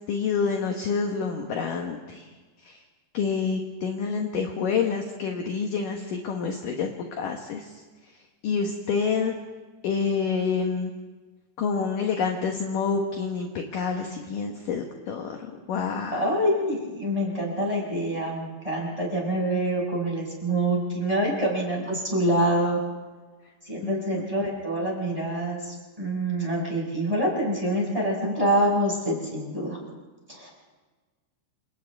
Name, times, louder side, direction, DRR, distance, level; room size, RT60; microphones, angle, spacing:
voice 1, 0.1-2.3 2.6-2.8 3.1-7.7 8.4-9.3 9.8-10.9 11.6-16.3 23.8-24.3, left 5 dB, 60° left, 2 dB, 2.4 m, -28 dB
voice 2, 16.1-22.8 23.7-29.8 30.3-30.5, right 1 dB, 5° right, -3 dB, 5.5 m, -26 dB
28.5 x 27.5 x 3.6 m, 1.3 s
omnidirectional pair, 5.2 m